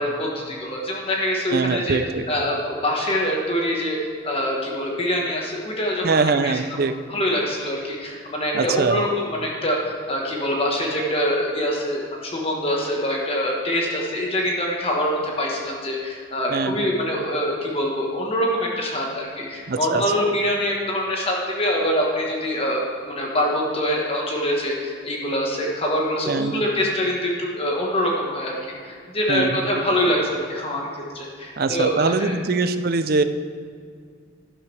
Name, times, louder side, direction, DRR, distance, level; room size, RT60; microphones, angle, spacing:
voice 1, 0.0-2.0 2.3-4.0 4.2-6.6 7.1-30.9 31.1-32.4, equal, 30° left, -2 dB, 1.3 m, -24 dB
voice 2, 1.5-2.3 6.0-6.9 8.5-9.0 16.5-16.9 19.7-20.0 26.3-26.6 29.3-29.6 31.6-33.2, right 4 dB, 50° right, 10 dB, 0.5 m, -22 dB
11.5 x 11.5 x 3.4 m, 2.1 s
head